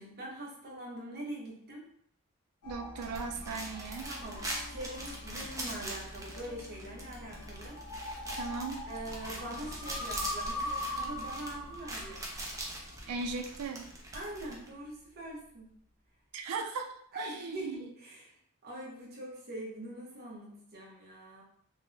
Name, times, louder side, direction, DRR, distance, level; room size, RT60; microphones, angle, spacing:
voice 1, 0.0-1.8 4.0-7.8 8.9-12.3 14.1-15.7 17.1-21.4, right 1 dB, 45° right, -3 dB, 0.8 m, -43 dB
sound 1, 2.6-13.6, left 1 dB, 75° left, 0.7 m, -42 dB
voice 2, 2.6-4.1 8.4-8.8 13.1-13.9 16.3-16.9 17.2-17.8, right 4 dB, 90° right, 5 dB, 0.4 m, -37 dB
sound 2, 3.0-14.7, right 1 dB, 15° right, 0.4 m, -43 dB
3.3 x 2.1 x 2.6 m, 0.67 s
head